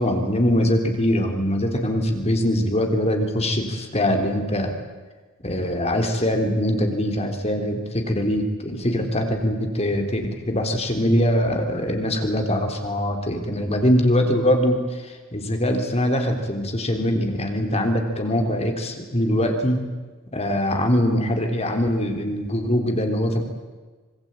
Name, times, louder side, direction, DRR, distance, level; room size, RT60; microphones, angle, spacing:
voice 1, 0.0-4.7 5.4-19.8 20.3-23.4, equal, 30° left, 4 dB, 3.6 m, -22 dB
26.5 x 24.0 x 9.0 m, 1.3 s
head